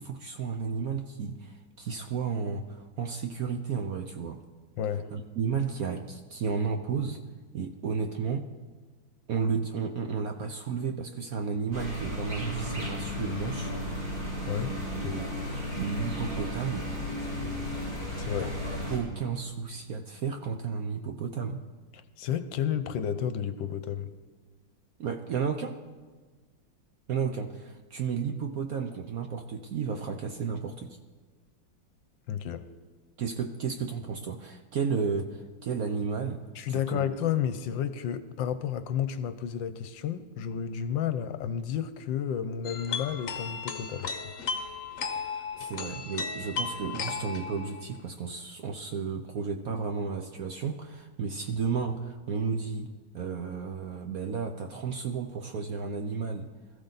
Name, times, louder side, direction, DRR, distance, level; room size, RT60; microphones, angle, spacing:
voice 1, 0.0-4.4 5.1-7.2 7.5-8.5 9.3-13.7 15.0-15.3 15.8-16.9 18.4-18.5 18.9-21.6 25.0-25.8 27.1-31.0 33.2-37.1 45.3-52.9 53.1-56.5, right 6 dB, 60° right, 6 dB, 1.0 m, -33 dB
voice 2, 4.8-5.1 14.5-14.7 15.0-15.4 18.2-18.6 22.2-24.1 32.3-32.6 36.5-44.3, left 9 dB, 75° left, 11 dB, 1.4 m, -31 dB
sound 1, 11.7-19.0, left 1 dB, 45° right, 5.3 m, -34 dB
sound 2, 42.6-47.8, left 5 dB, 50° left, 1.1 m, -35 dB
20.5 x 14.5 x 4.0 m, 1.4 s
omnidirectional pair, 2.2 m